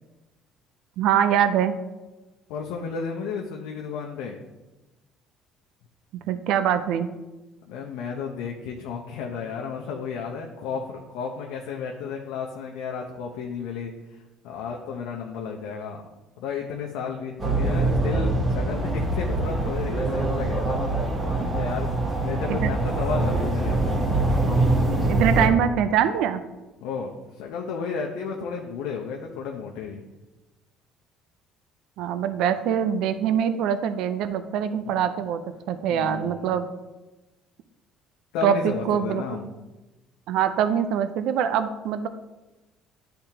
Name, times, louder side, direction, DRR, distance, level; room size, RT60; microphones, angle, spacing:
voice 1, 1.0-1.7 6.3-7.1 22.5-22.7 25.1-26.4 32.0-35.4 35.7-36.7 38.4-39.2 40.3-42.1, right 9 dB, 75° right, 11 dB, 0.4 m, -23 dB
voice 2, 2.5-4.4 7.6-16.0 16.4-21.2 21.6-21.9 22.2-23.8 26.8-30.0 35.9-36.5 38.3-39.5, left 6 dB, 85° left, 0 dB, 0.6 m, -33 dB
sound 1, 17.4-25.5, right 2 dB, 25° right, 1.4 m, -24 dB
10.0 x 3.4 x 2.8 m, 1.1 s
cardioid pair, 115°, 0 cm